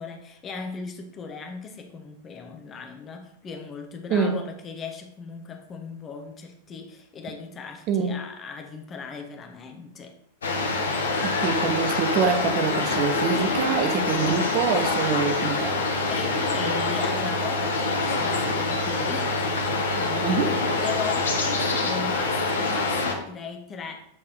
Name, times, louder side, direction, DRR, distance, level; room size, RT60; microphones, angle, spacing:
voice 1, 0.0-10.2 16.1-20.5 20.8-24.1, left 5 dB, 25° left, 4 dB, 1.0 m, -38 dB
voice 2, 4.1-4.4 7.9-8.2 11.2-15.8 20.2-20.6, right 6 dB, 40° right, 7 dB, 0.7 m, -25 dB
sound 1, 10.4-23.1, left 3 dB, 70° left, 1.0 m, -25 dB
7.9 x 3.7 x 4.4 m, 0.70 s
figure-of-eight pair, 90°, 0 cm